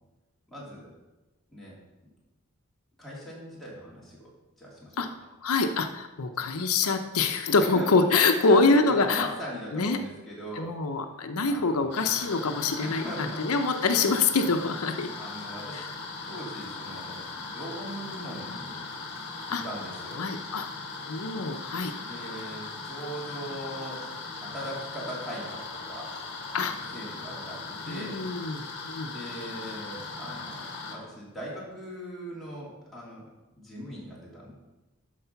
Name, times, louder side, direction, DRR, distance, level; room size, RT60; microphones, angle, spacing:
voice 1, 0.5-0.9 1.5-1.8 3.0-4.3 4.6-5.0 6.4-6.5 7.6-11.0 11.5-12.3 12.8-13.4 15.2-15.8 16.2-18.8 19.5-20.2 21.9-24.0 24.3-26.1 26.5-28.2 29.0-30.6 30.9-33.3 33.6-34.5, equal, ahead, -7 dB, 2.9 m, -40 dB
voice 2, 5.4-9.3 9.7-10.0 10.6-13.0 13.4-15.1 15.7-15.9 19.5-19.6 20.2-20.7 21.1-21.9 26.5-26.7 27.9-29.1, left 3 dB, 85° left, 7 dB, 0.7 m, -25 dB
sound 1, 11.9-31.0, left 3 dB, 50° left, 1.6 m, -39 dB
12.5 x 4.8 x 5.8 m, 1.1 s
head